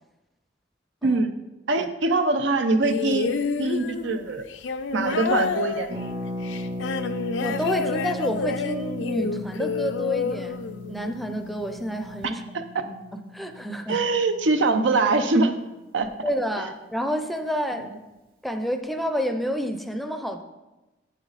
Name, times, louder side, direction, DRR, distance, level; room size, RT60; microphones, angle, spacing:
voice 1, 1.7-3.3 3.6-4.4 4.9-5.9 13.9-15.5 15.9-16.1 16.6-16.7, right 3 dB, 90° right, 8 dB, 0.7 m, -23 dB
sound 1, 2.8-11.2 12.2-12.3, left 5 dB, 80° left, 0.5 m, -29 dB
Harp, 5.9-15.5 15.8-15.9 16.0-16.4, left 2 dB, 55° right, 2.1 m, -37 dB
voice 2, 7.4-10.6 10.9-12.4 12.8-14.0 16.2-17.9 18.4-20.4, equal, ahead, 6 dB, 0.5 m, -29 dB
8.2 x 8.1 x 4.1 m, 1.1 s
head